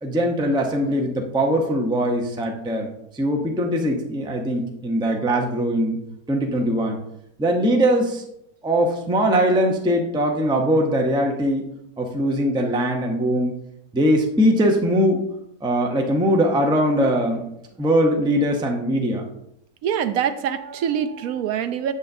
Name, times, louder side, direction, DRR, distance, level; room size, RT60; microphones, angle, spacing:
voice 1, 0.0-2.9 3.1-6.0 6.3-7.0 7.4-8.2 8.6-11.6 12.0-13.5 13.9-15.2 15.6-17.5 17.8-19.2, equal, 5° right, 2 dB, 0.5 m, -21 dB
voice 2, 19.8-21.9, right 8 dB, 75° right, 10 dB, 1.0 m, -24 dB
8.4 x 7.2 x 2.7 m, 0.79 s
omnidirectional pair, 1.6 m